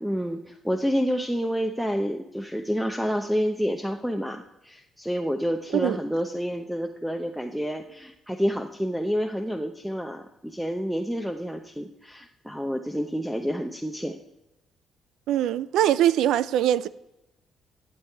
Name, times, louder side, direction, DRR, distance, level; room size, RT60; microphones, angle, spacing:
voice 1, 0.0-14.2, equal, 5° right, 0.7 m, -29 dB
voice 2, 15.3-16.9, right 11 dB, 85° right, 0.4 m, -22 dB
11.5 x 7.5 x 4.6 m
cardioid pair, 90°, 0 cm